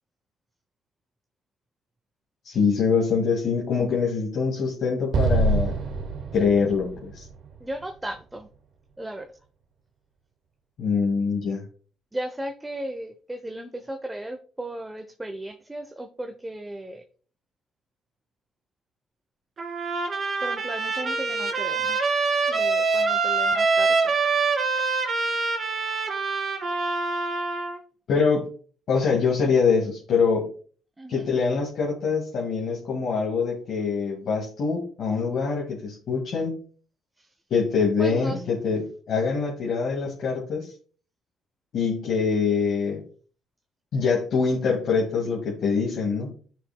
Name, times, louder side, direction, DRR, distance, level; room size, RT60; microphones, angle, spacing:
voice 1, 2.4-5.7 6.3-7.2 10.8-11.7 28.1-28.5 28.9-30.4 31.1-36.5 37.5-38.8 39.1-40.7 41.7-43.0 43.9-46.3, left 5 dB, 65° left, -3 dB, 2.1 m, -24 dB
Explosion, 5.1-8.4, right 2 dB, 60° right, 1.2 m, -26 dB
voice 2, 7.6-8.5 9.0-9.3 12.1-17.0 20.4-22.0 22.5-24.1 31.0-31.3 37.2-37.3 38.0-38.4, right 1 dB, 15° right, 6 dB, 0.8 m, -35 dB
Trumpet, 19.6-27.8, right 4 dB, 40° right, 2.4 m, -25 dB
12.0 x 5.9 x 2.3 m, 0.43 s
supercardioid pair, 75°, 0 cm